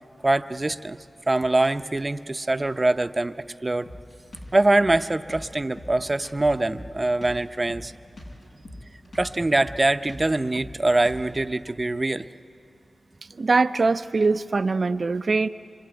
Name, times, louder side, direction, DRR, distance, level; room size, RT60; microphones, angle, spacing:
voice 1, 0.2-1.0 1.3-3.4 3.6-3.9 4.5-7.9 9.1-12.3, right 2 dB, 35° right, 10 dB, 0.8 m, -23 dB
Drum kit, 3.9-11.5, left 1 dB, 85° left, 7.4 m, -42 dB
voice 2, 13.4-15.5, right 3 dB, 65° right, 11 dB, 0.7 m, -22 dB
26.0 x 25.0 x 9.1 m, 2.5 s
cardioid pair, 50°, 0 cm